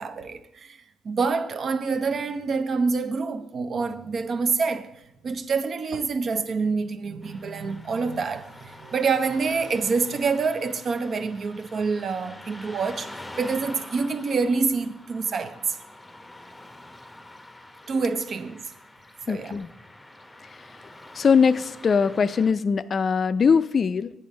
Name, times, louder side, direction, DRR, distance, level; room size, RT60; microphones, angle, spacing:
voice 1, 0.0-15.8 17.9-18.7 19.3-19.6, right 4 dB, 55° right, 0.6 m, -27 dB
Car passing by / Traffic noise roadway noise, 7.2-22.5, left 1 dB, 15° left, 0.7 m, -45 dB
voice 2, 19.3-19.7 21.1-24.1, left 6 dB, 50° left, 0.3 m, -21 dB
8.4 x 5.3 x 5.1 m
hypercardioid pair, 55°, 0 cm